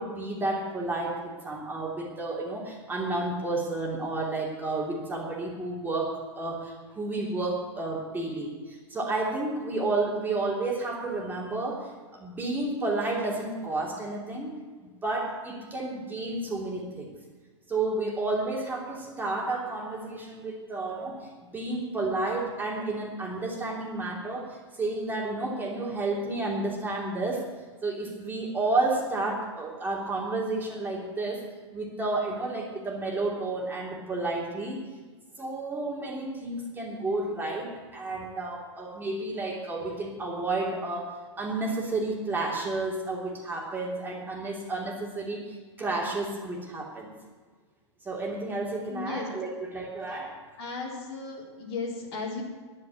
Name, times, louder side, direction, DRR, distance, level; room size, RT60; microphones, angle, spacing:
voice 1, 0.0-14.5 14.8-17.1 17.7-27.4 27.8-31.4 31.7-34.8 35.4-41.1 41.4-47.1 48.0-50.4, right 2 dB, 15° right, -3 dB, 3.0 m, -31 dB
voice 2, 48.9-49.3 50.1-50.2 50.6-52.4, left 4 dB, 60° left, -1 dB, 3.8 m, -35 dB
10.5 x 9.7 x 8.7 m, 1.4 s
hypercardioid pair, 120°, 15 cm